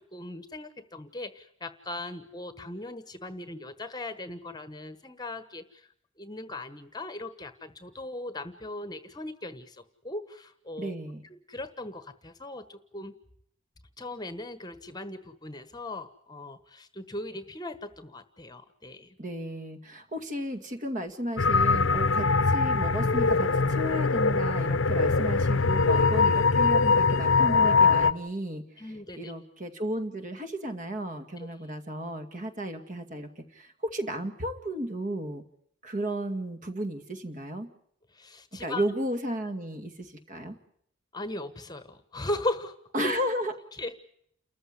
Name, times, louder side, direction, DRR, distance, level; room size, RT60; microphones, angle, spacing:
voice 1, 0.1-5.9 6.2-11.0 11.2-13.1 14.0-19.2 28.8-29.3 31.4-31.5 38.1-38.8 41.1-42.8 43.7-43.9, left 2 dB, 20° left, 11 dB, 1.3 m, -38 dB
voice 2, 10.8-11.2 19.2-28.9 29.2-35.4 35.8-37.7 38.6-40.6 42.9-43.5, right 1 dB, 40° right, 7 dB, 2.2 m, -34 dB
sound 1, 21.4-28.1, left 4 dB, 70° left, 0.9 m, -22 dB
29.5 x 14.5 x 9.8 m, 0.70 s
head